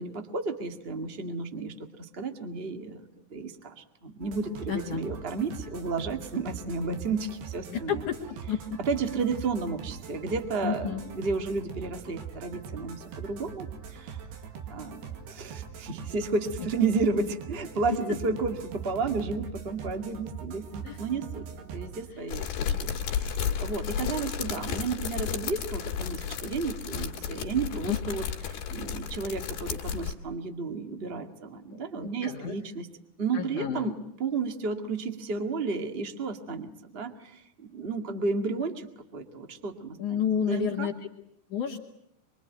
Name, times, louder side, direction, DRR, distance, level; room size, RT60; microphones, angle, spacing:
voice 1, 0.0-3.0 3.3-8.0 8.9-14.2 14.7-15.0 15.3-21.4 21.7-22.5 22.8-32.9 33.2-33.9 34.2-38.9 39.1-40.9, right 4 dB, 55° right, 6 dB, 0.6 m, -32 dB
sound 1, 4.2-22.1, right 7 dB, 75° right, 4.3 m, -42 dB
voice 2, 4.7-5.0 7.7-8.8 10.6-11.0 16.6-16.7 20.8-21.0 22.1-22.3 27.9-28.0 31.7-32.5 33.3-33.9 40.0-40.9 41.5-41.8, left 8 dB, 55° left, 0 dB, 3.1 m, -31 dB
sound 2, 22.3-30.1, left 8 dB, 70° left, 3.9 m, -33 dB
25.0 x 24.5 x 9.2 m, 0.76 s
omnidirectional pair, 4.8 m